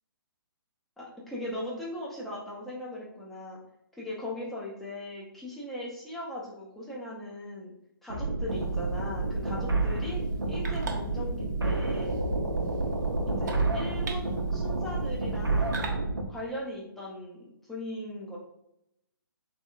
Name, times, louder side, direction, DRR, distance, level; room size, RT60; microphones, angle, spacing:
voice 1, 1.0-3.6 4.0-7.7 8.0-10.2 10.5-12.2 13.3-15.8 16.3-18.4, left 1 dB, ahead, -6 dB, 0.5 m, -39 dB
sound 1, 8.1-16.2, right 2 dB, 90° right, 0.6 m, -29 dB
sound 2, 8.5-15.9, right 4 dB, 50° right, 0.6 m, -45 dB
3.4 x 2.6 x 2.4 m, 0.80 s
figure-of-eight pair, 135°, 12 cm